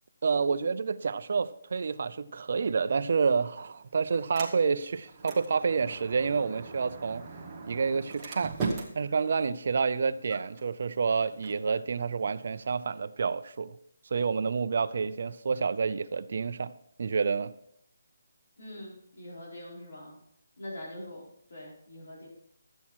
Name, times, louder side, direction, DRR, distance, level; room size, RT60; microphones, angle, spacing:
voice 1, 0.2-7.3 7.7-8.6 8.9-13.8 14.1-16.7 17.0-17.5, right 5 dB, 40° right, 0.5 m, -29 dB
Sliding door, 3.0-13.0, right 4 dB, 10° right, 1.1 m, -42 dB
voice 2, 18.6-20.2 20.6-21.2 21.5-22.3, left 1 dB, 60° left, 4.8 m, -43 dB
13.0 x 8.5 x 4.5 m
hypercardioid pair, 180°, 0 cm